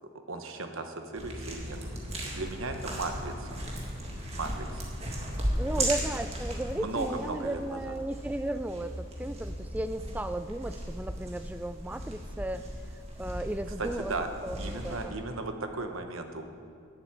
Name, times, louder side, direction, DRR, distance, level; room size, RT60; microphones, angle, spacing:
voice 1, 0.3-2.0 2.2-3.6 4.3-4.8 5.7-5.9 6.8-7.9 13.8-14.3 14.6-16.4, right 3 dB, 85° right, 6 dB, 1.1 m, -36 dB
sound 1, 1.2-15.0, right 1 dB, 30° right, 1.7 m, -36 dB
voice 2, 5.6-12.6 13.2-14.1 14.4-15.2, right 1 dB, 10° right, 10 dB, 0.3 m, -35 dB
11.0 x 7.5 x 8.5 m, 2.2 s
head